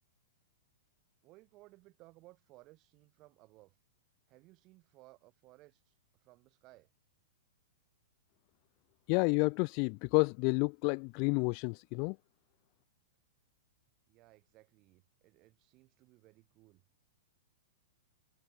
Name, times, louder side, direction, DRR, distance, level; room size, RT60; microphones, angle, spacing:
voice 1, 1.2-3.7 4.3-5.9 6.2-6.9 14.1-16.8, right 20 dB, 30° right, 5.9 m, -61 dB
voice 2, 9.1-12.2, left 39 dB, 40° left, 0.6 m, -30 dB
hypercardioid pair, 155°, 0 cm